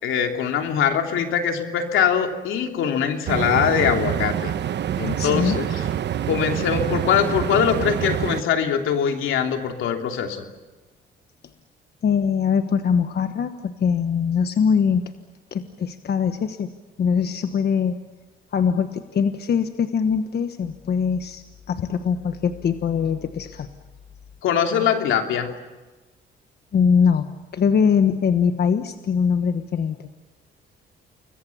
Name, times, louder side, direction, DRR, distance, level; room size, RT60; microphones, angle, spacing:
voice 1, 0.0-4.5 5.0-5.8 6.3-10.4 24.4-25.5, left 8 dB, 85° left, 4 dB, 3.0 m, -22 dB
sound 1, 3.3-8.4, right 10 dB, 60° right, 1.0 m, -26 dB
voice 2, 5.2-5.6 12.0-15.0 15.5-16.7 17.0-18.0 18.5-23.7 26.7-27.3 27.5-30.1, left 6 dB, 55° left, 8 dB, 1.3 m, -22 dB
29.5 x 22.0 x 7.2 m, 1.2 s
cardioid pair, 90°, 20 cm